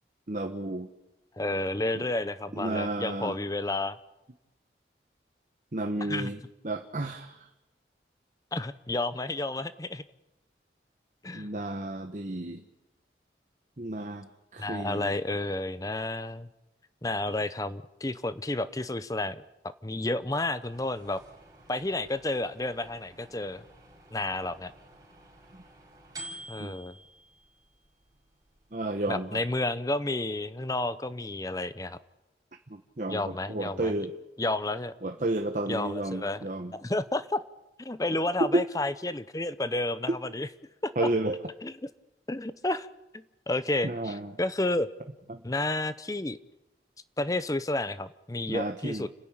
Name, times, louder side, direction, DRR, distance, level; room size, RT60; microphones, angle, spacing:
voice 1, 0.3-0.9 2.5-3.4 5.7-6.4 6.6-7.5 11.3-12.6 13.8-14.3 14.5-15.1 26.6-26.7 28.7-29.3 32.7-34.1 35.0-36.7 38.4-38.7 41.0-41.3 43.8-44.3 45.3-45.4 48.5-49.1, right 2 dB, 45° right, 5 dB, 1.1 m, -31 dB
voice 2, 1.4-4.0 6.0-6.3 8.5-10.0 11.2-11.5 14.6-16.5 17.0-19.4 19.8-21.2 21.7-23.6 24.1-24.7 26.5-27.0 29.1-32.0 33.1-33.9 34.4-34.9 35.7-36.4 36.7-37.4 37.8-40.5 40.8-41.1 41.6-41.7 42.3-42.9 43.5-44.9 45.4-46.4 47.2-49.1, left 2 dB, 20° left, 14 dB, 0.7 m, -31 dB
sound 1, 20.7-29.6, right 2 dB, 20° right, 5.1 m, -50 dB
30.0 x 10.5 x 8.9 m, 1.0 s
head